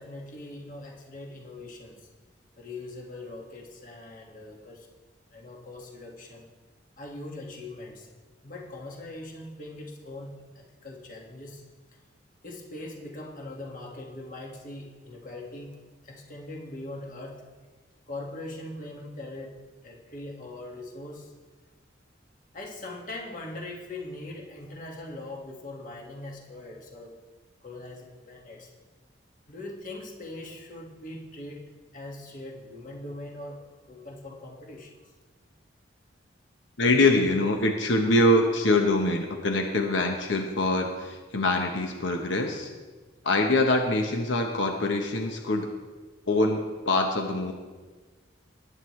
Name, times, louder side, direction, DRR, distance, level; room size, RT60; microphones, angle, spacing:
voice 1, 0.0-2.1 2.6-4.9 5.3-6.5 7.0-8.1 8.4-11.6 12.4-15.8 16.0-17.4 18.1-19.6 19.8-21.3 22.5-27.2 27.6-28.7 29.5-34.9, left 2 dB, 45° left, 0 dB, 1.8 m, -41 dB
voice 2, 36.8-42.7 43.2-45.7 46.3-47.5, left 2 dB, 85° left, 3 dB, 1.0 m, -24 dB
19.0 x 8.9 x 3.2 m, 1.4 s
head